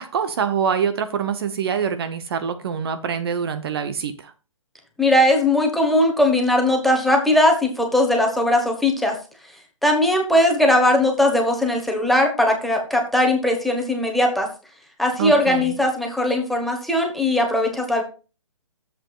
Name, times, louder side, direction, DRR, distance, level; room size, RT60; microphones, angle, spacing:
voice 1, 0.0-4.3 15.2-15.8, right 7 dB, 45° right, 10 dB, 0.8 m, -25 dB
voice 2, 5.0-9.2 9.8-14.5 15.0-18.0, left 1 dB, ahead, 2 dB, 1.2 m, -19 dB
11.0 x 7.7 x 2.4 m, 0.33 s
figure-of-eight pair, 140°, 17 cm